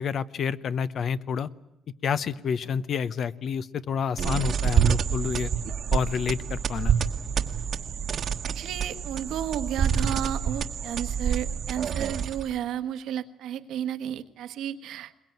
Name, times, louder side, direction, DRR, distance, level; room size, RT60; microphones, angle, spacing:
voice 1, 0.0-1.5 2.0-5.5 5.9-6.9, left 7 dB, 55° left, 15 dB, 0.8 m, -29 dB
sound 1, 4.2-12.6, right 7 dB, 55° right, 1.2 m, -27 dB
voice 2, 8.5-15.1, right 10 dB, 80° right, 10 dB, 1.3 m, -32 dB
22.0 x 21.0 x 9.3 m, 0.88 s
cardioid pair, 120°, 0 cm